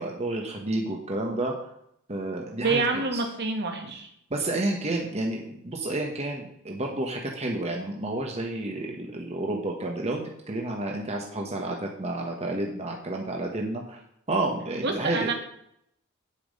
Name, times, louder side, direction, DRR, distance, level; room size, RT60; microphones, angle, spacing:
voice 1, 0.0-1.6 2.1-2.8 3.1-3.2 4.3-10.2 10.5-14.0 14.3-15.3, right 2 dB, 30° right, 0 dB, 1.3 m, -30 dB
voice 2, 2.6-4.1 14.8-15.3, right 3 dB, 55° right, 4 dB, 1.8 m, -27 dB
8.6 x 8.5 x 5.4 m, 0.73 s
head